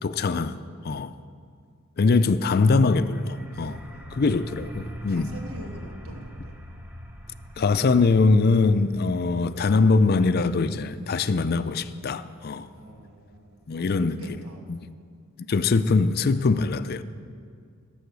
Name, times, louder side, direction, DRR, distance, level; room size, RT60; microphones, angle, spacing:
voice 1, 0.0-0.6 0.8-1.1 2.0-3.8 4.1-5.3 7.6-12.7 13.7-14.2 14.7-14.8 15.5-17.0, left 3 dB, 45° left, 0.4 m, -22 dB
sound 1, 2.9-14.4, right 1 dB, 10° right, 0.7 m, -43 dB
voice 2, 3.7-4.1 5.1-6.6 12.7-14.6, equal, 70° right, 1.7 m, -45 dB
16.5 x 7.0 x 6.8 m
head